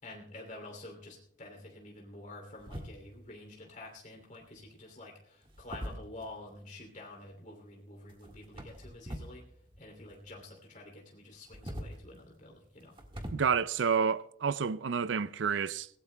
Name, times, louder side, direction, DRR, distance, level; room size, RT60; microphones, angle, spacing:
voice 1, 0.0-9.4 9.8-13.0, left 2 dB, 40° left, 2.8 m, -49 dB
sound 1, 2.6-3.3 4.3-4.7 5.4-6.6 8.1-9.4 9.7-10.5 11.3-13.3, equal, 25° right, 1.6 m, -44 dB
voice 2, 13.3-15.9, right 6 dB, 70° right, 0.5 m, -29 dB
24.5 x 17.0 x 2.2 m
head